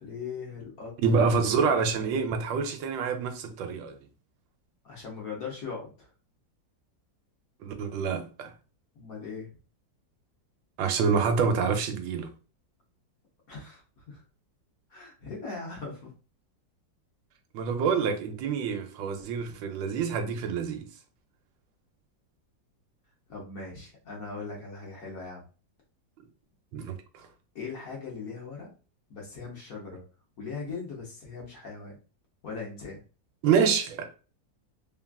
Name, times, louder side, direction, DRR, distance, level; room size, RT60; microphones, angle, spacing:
voice 1, 0.0-0.9 1.6-1.7 4.8-6.1 8.9-9.5 13.5-14.2 14.9-16.1 23.3-25.4 27.5-28.7 29.1-30.0 30.4-32.0 32.4-33.0, left 4 dB, 55° left, 1.1 m, -39 dB
voice 2, 1.0-4.0 7.6-8.5 10.8-12.3 17.5-20.9 26.7-27.3 33.4-34.1, right 5 dB, 85° right, 1.3 m, -27 dB
3.4 x 2.3 x 2.2 m
omnidirectional pair, 2.0 m